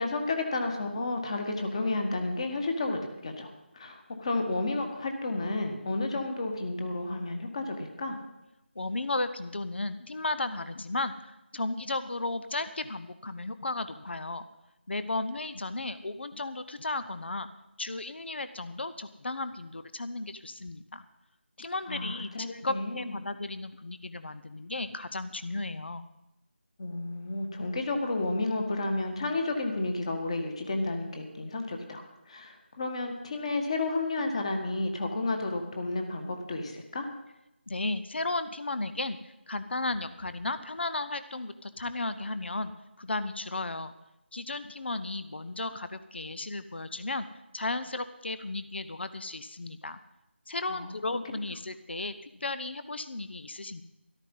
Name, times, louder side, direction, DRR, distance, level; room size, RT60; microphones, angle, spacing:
voice 1, 0.0-8.2 21.9-23.2 26.8-37.1 50.7-51.0, left 2 dB, 30° left, 4 dB, 1.8 m, -32 dB
voice 2, 8.7-14.5 14.9-17.5 17.8-21.0 21.6-26.0 37.7-39.2 39.5-42.7 43.0-43.9 44.3-47.3 47.5-50.0 50.5-53.8, left 2 dB, 65° left, 12 dB, 0.9 m, -34 dB
13.0 x 12.5 x 5.5 m, 0.92 s
figure-of-eight pair, 170°, 6 cm